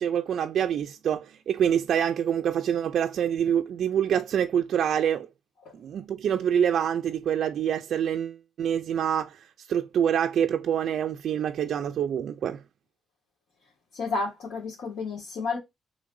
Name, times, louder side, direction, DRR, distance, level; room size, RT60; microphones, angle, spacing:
voice 1, 0.0-5.3 5.8-12.6, right 9 dB, 65° right, 0.3 m, -26 dB
voice 2, 13.9-15.6, left 4 dB, 80° left, 1.6 m, -31 dB
3.7 x 3.2 x 3.8 m
wide cardioid pair, 165°, 0 cm